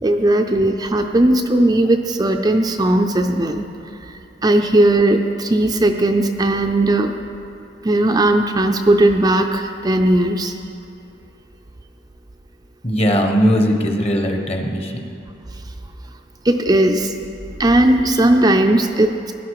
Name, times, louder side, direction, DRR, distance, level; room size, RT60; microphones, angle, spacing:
voice 1, 0.0-3.6 4.4-7.1 7.8-10.5 16.4-17.1 17.6-19.3, right 1 dB, 20° right, 4 dB, 0.5 m, -17 dB
voice 2, 12.8-15.0, equal, 35° left, 3 dB, 1.1 m, -18 dB
16.5 x 11.5 x 4.8 m, 2.6 s
head